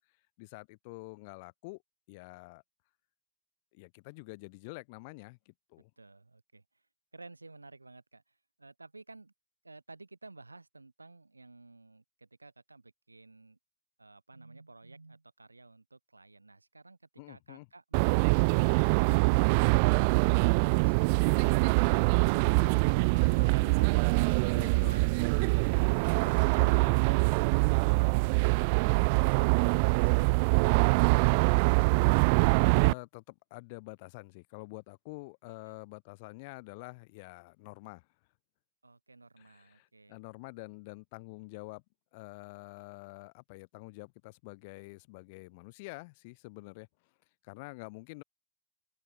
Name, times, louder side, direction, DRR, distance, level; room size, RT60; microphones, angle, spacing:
voice 1, 0.4-1.8 2.1-2.6 3.7-5.9 17.2-17.7 22.5-23.7 24.6-24.9 26.1-27.0 32.8-38.0 39.4-41.8 42.1-46.9 47.4-48.2, left 27 dB, 50° left, 5.0 m, -47 dB
voice 2, 6.0-6.6 7.1-9.3 9.6-13.6 14.0-17.0 35.7-35.8 38.8-40.2, right 3 dB, 80° right, 2.3 m, -54 dB
sound 1, 17.9-32.9, right 31 dB, 45° right, 0.3 m, -24 dB
open air
figure-of-eight pair, 90°, 0 cm